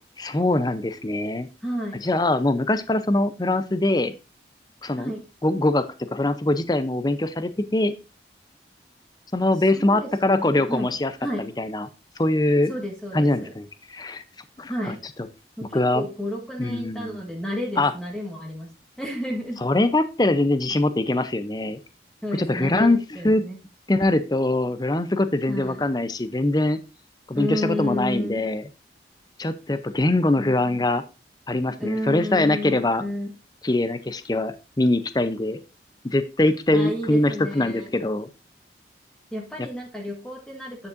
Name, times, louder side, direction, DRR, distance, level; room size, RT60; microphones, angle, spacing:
voice 1, 0.2-1.5 2.0-4.1 4.8-5.1 5.4-7.9 9.3-11.1 11.6-11.9 12.2-12.7 13.1-14.2 14.6-14.9 15.7-16.1 16.6-17.2 17.8-17.9 19.6-21.8 22.4-23.0 23.2-23.4 23.9-26.8 27.3-28.6 29.4-31.0 31.5-33.0 33.6-35.6 36.0-38.3, left 2 dB, 20° left, 12 dB, 0.6 m, -22 dB
voice 2, 1.6-2.0 5.0-5.2 9.5-10.9 11.2-11.5 12.7-13.5 14.7-15.0 15.6-18.7 19.0-19.6 22.2-23.6 25.5-25.9 27.3-28.4 31.8-33.3 36.7-37.9 39.3-40.9, left 1 dB, 5° left, 0 dB, 1.5 m, -31 dB
9.6 x 7.1 x 2.5 m, 0.30 s
head